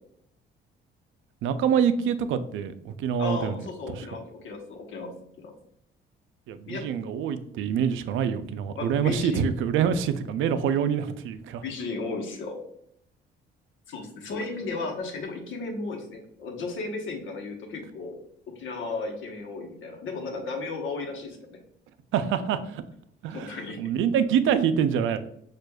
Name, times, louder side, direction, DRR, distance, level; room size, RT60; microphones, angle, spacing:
voice 1, 1.4-4.1 6.5-11.6 22.1-22.8 23.2-23.5 23.8-25.2, right 8 dB, 80° right, 11 dB, 0.4 m, -26 dB
voice 2, 3.2-5.1 5.4-5.5 6.7-6.8 8.8-9.4 11.6-12.6 13.9-18.2 18.6-21.6 23.3-23.8, left 3 dB, 80° left, 3 dB, 1.0 m, -34 dB
6.1 x 2.4 x 2.2 m, 0.71 s
cardioid pair, 90°, 20 cm